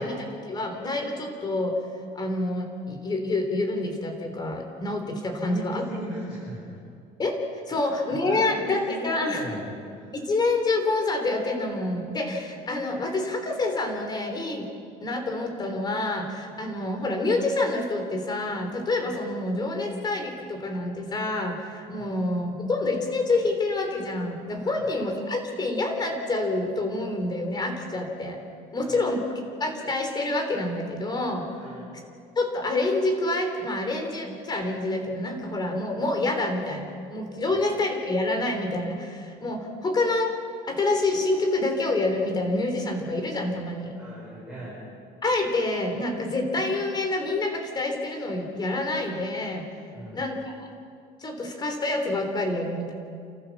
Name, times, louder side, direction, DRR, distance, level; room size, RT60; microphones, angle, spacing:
voice 1, 0.0-1.8 2.1-5.9 7.2-7.4 7.7-9.5 10.1-14.7 15.0-28.4 28.7-31.5 32.4-40.3 40.6-43.9 45.2-49.6 50.1-50.6 51.2-52.9, left 2 dB, 25° left, 3 dB, 3.4 m, -27 dB
voice 2, 5.4-6.6 7.7-10.1 21.9-22.1 24.6-24.9 28.8-29.0 31.6-31.9 37.5-37.6 43.9-44.8 49.9-50.3, right 1 dB, 5° right, -8 dB, 6.4 m, -38 dB
29.5 x 14.5 x 7.1 m, 2.3 s
cardioid pair, 150°, 18 cm